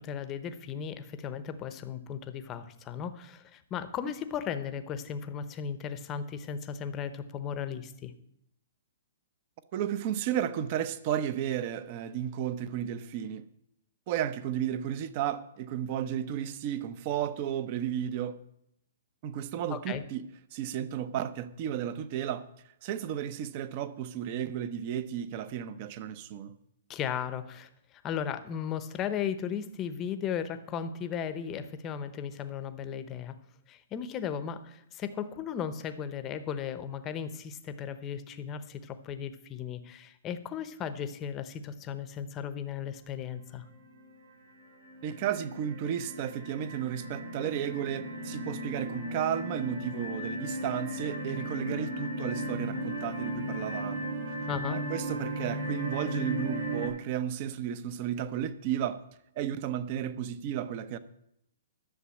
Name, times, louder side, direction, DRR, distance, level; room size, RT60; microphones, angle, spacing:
voice 1, 0.0-8.1 19.7-20.0 26.9-33.3 33.7-43.6 54.5-54.8, left 8 dB, 20° left, 0.8 m, -36 dB
voice 2, 9.7-13.5 14.1-18.4 19.2-20.2 20.5-22.5 22.8-26.5 45.0-54.1 54.7-59.0 59.4-61.0, right 10 dB, 35° right, 0.7 m, -33 dB
sound 1, 43.7-44.1 44.6-56.9, right 1 dB, 80° right, 3.8 m, -36 dB
11.5 x 6.8 x 8.3 m
hypercardioid pair, 165°, 0 cm